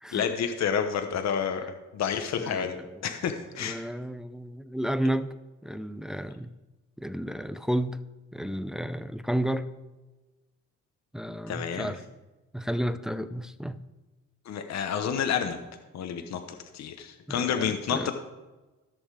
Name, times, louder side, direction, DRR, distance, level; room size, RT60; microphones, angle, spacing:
voice 1, 0.1-2.8 3.0-3.8 11.5-11.9 14.5-15.6 15.9-16.4 16.7-18.1, left 7 dB, 60° left, 6 dB, 1.0 m, -29 dB
voice 2, 2.4-3.0 3.6-5.3 5.6-6.5 7.0-8.0 8.3-9.7 11.1-12.0 12.5-13.8 17.3-18.1, right 1 dB, ahead, 12 dB, 0.5 m, -32 dB
14.5 x 6.4 x 4.8 m, 1.2 s
cardioid pair, 90°, 30 cm